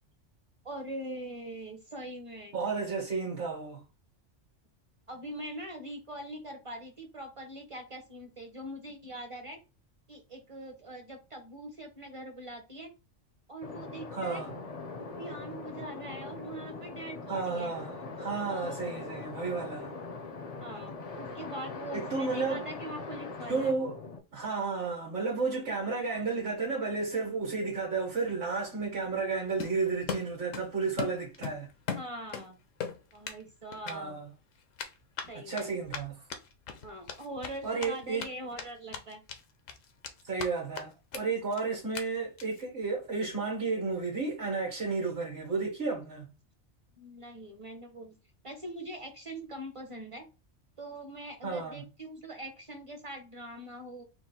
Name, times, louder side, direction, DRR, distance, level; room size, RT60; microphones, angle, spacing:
voice 1, 0.6-2.6 5.1-9.6 10.1-12.9 13.5-14.4 15.0-17.7 18.5-19.1 19.4-19.6 20.6-23.7 31.9-32.6 33.1-34.2 35.2-35.7 36.8-39.2 47.0-48.2 48.4-50.3 50.8-54.0, right 1 dB, 30° right, 0.7 m, -42 dB
voice 2, 2.5-3.8 14.1-14.5 17.3-19.9 21.9-22.7 23.5-24.0 24.3-31.7 33.8-34.3 35.3-36.2 37.6-38.3 40.2-46.3 51.4-51.9, right 4 dB, 60° right, 1.5 m, -32 dB
sound 1, 13.6-24.2, left 4 dB, 50° left, 0.4 m, -41 dB
Run, 29.6-30.7 31.0-32.5 32.8-33.4 33.7-33.9 34.8-38.3 38.6-38.7 38.9-39.4 39.7-40.5 40.7-40.8 41.1-41.2 41.5-41.6 41.9-42.0 42.4-42.6, left 6 dB, 85° left, 1.1 m, -38 dB
3.9 x 2.4 x 4.1 m
omnidirectional pair, 1.3 m